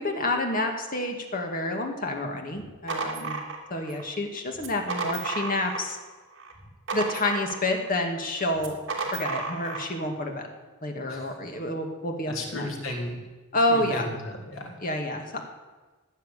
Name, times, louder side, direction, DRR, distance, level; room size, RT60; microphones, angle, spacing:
voice 1, 0.0-3.4 3.7-6.0 6.9-8.8 9.1-10.5 10.8-12.7 13.5-14.1 14.8-15.4, left 1 dB, 40° left, 3 dB, 2.3 m, -29 dB
sound 1, 2.6-4.0 4.6-6.0 6.4-7.9 8.6-9.9, right 4 dB, 60° right, 3.0 m, -33 dB
voice 2, 12.3-13.2 13.7-14.8, left 1 dB, 70° left, 0 dB, 3.7 m, -34 dB
15.5 x 10.0 x 8.4 m, 1.3 s
head